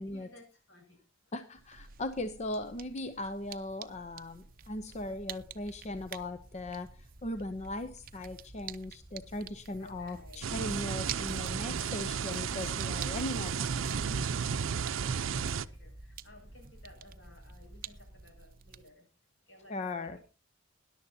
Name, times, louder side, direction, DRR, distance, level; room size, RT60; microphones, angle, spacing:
voice 1, 0.0-1.3 1.9-2.0 4.2-4.6 4.8-5.1 6.1-6.3 7.6-7.7 8.3-8.5 8.9-9.3 9.8-11.0 14.9-19.1 19.5-20.2, left 1 dB, 65° left, 1 dB, 5.9 m, -58 dB
voice 2, 1.3-14.4 19.7-20.2, left 1 dB, 35° left, 10 dB, 0.6 m, -39 dB
sound 1, 1.6-18.9, right 10 dB, 45° right, 0.6 m, -50 dB
sound 2, 4.6-18.3, equal, 15° right, 4.0 m, -54 dB
sound 3, 10.4-15.7, right 6 dB, 90° right, 0.5 m, -33 dB
20.0 x 11.0 x 2.7 m, 0.31 s
head